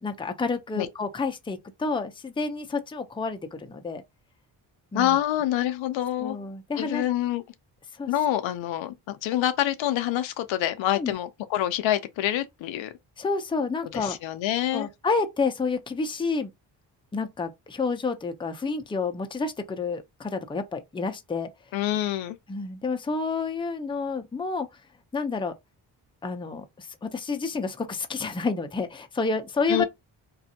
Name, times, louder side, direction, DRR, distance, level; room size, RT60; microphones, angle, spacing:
voice 1, 0.0-4.0 4.9-5.2 6.2-7.0 8.0-8.1 10.9-11.1 13.2-14.2 14.7-16.5 17.1-21.5 22.5-24.7 25.1-25.5 26.2-29.8, left 4 dB, 10° left, 0.5 m, -29 dB
voice 2, 4.9-6.4 6.8-7.4 8.1-12.9 13.9-14.9 21.7-22.4 29.7-29.8, left 12 dB, 75° left, 0.6 m, -26 dB
2.6 x 2.4 x 2.7 m
supercardioid pair, 60°, 47 cm